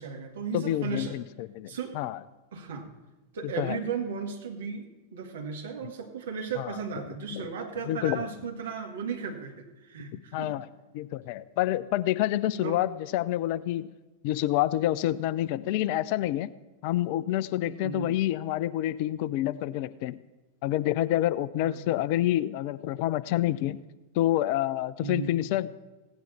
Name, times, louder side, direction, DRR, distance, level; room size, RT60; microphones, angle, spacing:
voice 1, 0.0-1.2 1.7-2.0 2.5-2.9 3.3-10.6 12.6-12.8 17.7-18.2 21.6-21.8 25.0-25.5, right 5 dB, 60° right, 3 dB, 2.0 m, -35 dB
voice 2, 0.5-2.2 3.4-3.8 6.6-6.8 7.3-7.5 7.9-8.3 10.3-10.7 10.9-13.9 14.2-16.5 16.8-20.2 20.6-23.8 24.1-25.7, left 14 dB, 45° left, 16 dB, 0.4 m, -28 dB
16.5 x 9.3 x 4.3 m, 1.1 s
figure-of-eight pair, 90°, 0 cm